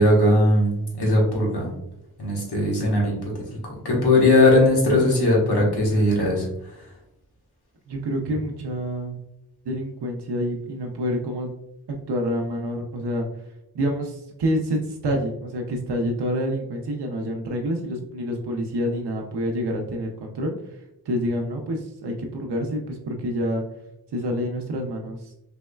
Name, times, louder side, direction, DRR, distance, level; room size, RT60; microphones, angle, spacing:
voice 1, 0.0-1.7 2.2-3.1 3.8-6.5, left 1 dB, 80° left, -3 dB, 1.3 m, -19 dB
voice 2, 7.9-9.2 9.6-11.5 12.1-13.3 13.7-23.6 24.1-25.3, equal, 85° right, 1 dB, 0.6 m, -27 dB
3.4 x 3.0 x 2.2 m, 0.84 s
wide cardioid pair, 55°, 39 cm